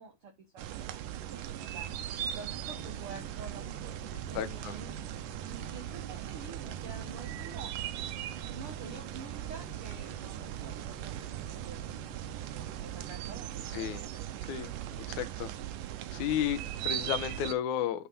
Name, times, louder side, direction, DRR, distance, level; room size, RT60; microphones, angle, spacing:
voice 1, 0.0-1.4 1.7-1.9 2.3-4.9 5.5-7.7 8.5-12.1 12.5-14.5, right 5 dB, 50° right, 1.7 m, -48 dB
sound 1, 0.6-17.5, right 12 dB, 75° right, 2.0 m, -39 dB
sound 2, 2.4-13.6, right 3 dB, 10° left, 2.6 m, -50 dB
voice 2, 4.3-4.8 13.7-14.1 14.5-15.5 16.1-18.1, left 10 dB, 70° left, 2.0 m, -33 dB
12.0 x 4.6 x 5.5 m
omnidirectional pair, 4.6 m